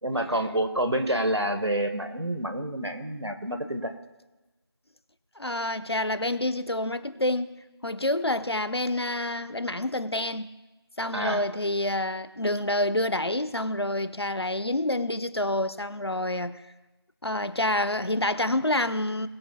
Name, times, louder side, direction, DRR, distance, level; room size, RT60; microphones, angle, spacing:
voice 1, 0.0-3.9 11.1-11.4, right 1 dB, 85° right, 1.5 m, -28 dB
voice 2, 5.4-10.5 11.0-16.6 17.2-19.3, left 1 dB, 75° left, 1.0 m, -28 dB
21.5 x 7.3 x 2.3 m
figure-of-eight pair, 180°, 14 cm